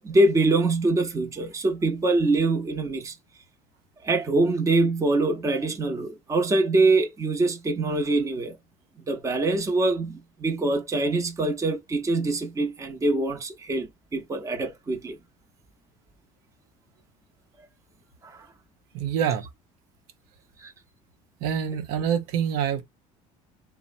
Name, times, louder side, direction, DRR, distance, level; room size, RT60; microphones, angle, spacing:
voice 1, 0.0-3.1 4.0-8.6 9.1-15.2 18.2-18.5 20.6-20.7, right 2 dB, 20° right, 0.8 m, -24 dB
voice 2, 18.9-19.4 21.4-22.8, right 8 dB, 80° right, 0.7 m, -26 dB
3.0 x 2.0 x 2.5 m
supercardioid pair, 105°, 15 cm